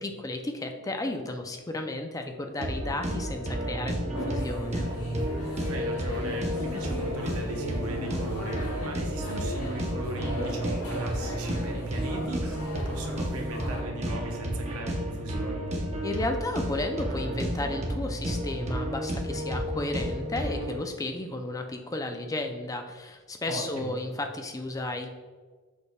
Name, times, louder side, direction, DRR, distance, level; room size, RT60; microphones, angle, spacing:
voice 1, 0.0-4.9 16.0-25.1, left 2 dB, 15° left, 5 dB, 0.3 m, -33 dB
sound 1, 2.6-20.8, right 1 dB, 30° right, 0.7 m, -32 dB
sound 2, 4.1-13.8, left 2 dB, 75° left, 1.1 m, -38 dB
voice 2, 5.7-15.6 23.5-24.0, right 2 dB, 65° right, 2 dB, 0.7 m, -37 dB
6.3 x 3.4 x 2.2 m, 1.4 s
head